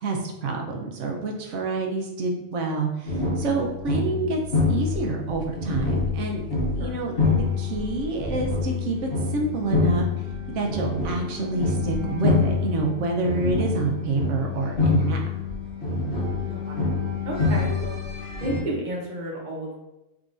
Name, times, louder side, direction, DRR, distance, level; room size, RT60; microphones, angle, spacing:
voice 1, 0.0-4.4 4.7-6.4 6.8-10.1 10.5-15.2, right 3 dB, 80° right, 1 dB, 1.0 m, -27 dB
sound 1, 3.1-18.6, left 4 dB, 50° left, 1.4 m, -26 dB
voice 2, 16.5-16.9 17.3-18.0 18.4-19.8, right 1 dB, 40° right, -3 dB, 0.9 m, -32 dB
3.6 x 2.9 x 2.5 m, 0.94 s
omnidirectional pair, 1.3 m